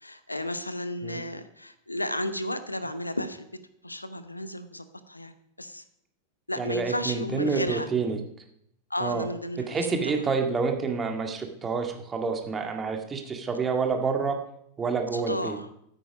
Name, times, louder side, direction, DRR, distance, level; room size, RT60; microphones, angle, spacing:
voice 1, 0.0-3.5 3.8-5.8 6.5-7.9 8.9-10.3 15.1-15.7, left 1 dB, 85° left, 12 dB, 0.9 m, -33 dB
voice 2, 6.6-8.2 9.0-9.3 9.7-14.4 14.8-15.6, right 5 dB, 20° right, 4 dB, 1.9 m, -28 dB
14.5 x 8.8 x 5.3 m, 0.72 s
figure-of-eight pair, 90°, 0 cm